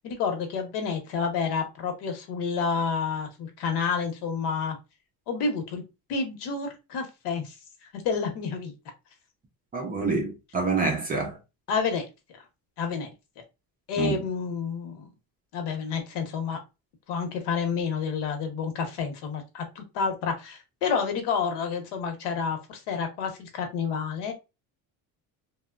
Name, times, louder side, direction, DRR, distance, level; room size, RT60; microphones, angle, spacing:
voice 1, 0.0-4.8 5.3-5.8 6.1-7.5 7.9-8.7 11.7-12.0 12.8-13.1 13.9-15.1 15.5-16.6 17.1-24.3, left 5 dB, 80° left, 0.9 m, -29 dB
voice 2, 9.7-11.4 14.0-14.2, right 4 dB, 25° right, 0.3 m, -27 dB
3.0 x 2.0 x 2.3 m
cardioid pair, 165°, 40 cm